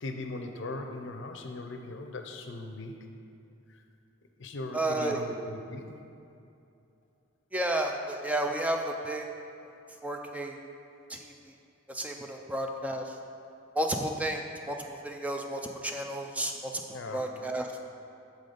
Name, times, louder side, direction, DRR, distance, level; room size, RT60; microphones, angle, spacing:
voice 1, 0.0-3.0 3.7-3.8 4.4-6.0 16.9-17.2, left 2 dB, 65° left, 5 dB, 0.6 m, -39 dB
voice 2, 4.7-5.2 7.5-9.2 10.0-10.6 11.1-11.2 11.9-13.1 13.8-17.7, right 1 dB, 5° right, 2 dB, 0.3 m, -32 dB
7.3 x 4.0 x 5.0 m, 2.6 s
head